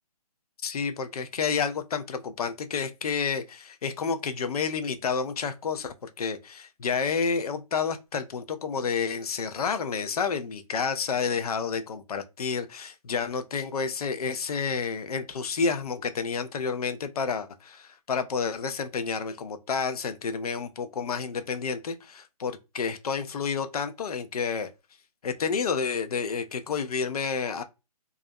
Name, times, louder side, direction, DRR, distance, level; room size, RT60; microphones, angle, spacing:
voice 1, 0.6-24.7 25.2-27.6, left 5 dB, 65° left, 0.5 m, -30 dB
2.4 x 2.0 x 2.6 m
hypercardioid pair, 160°, 20 cm